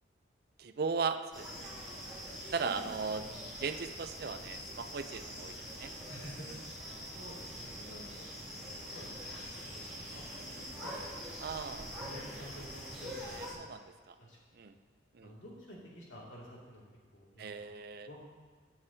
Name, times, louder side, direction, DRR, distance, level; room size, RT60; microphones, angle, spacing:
voice 1, 0.6-1.7 2.5-3.2 3.6-5.9 11.4-11.9 13.2-14.1 14.5-14.7 15.1-15.3 17.4-18.1, right 5 dB, 55° right, 9 dB, 0.4 m, -37 dB
sound 1, 1.3-13.5, equal, ahead, 2.4 m, -44 dB
voice 2, 6.1-8.2 8.7-9.2 9.4-11.1 11.4-11.5 12.0-13.7 14.2-14.4 15.2-16.9 17.1-17.7 18.0-18.2, equal, 85° left, -5 dB, 2.4 m, -51 dB
15.0 x 7.1 x 2.8 m, 1.4 s
head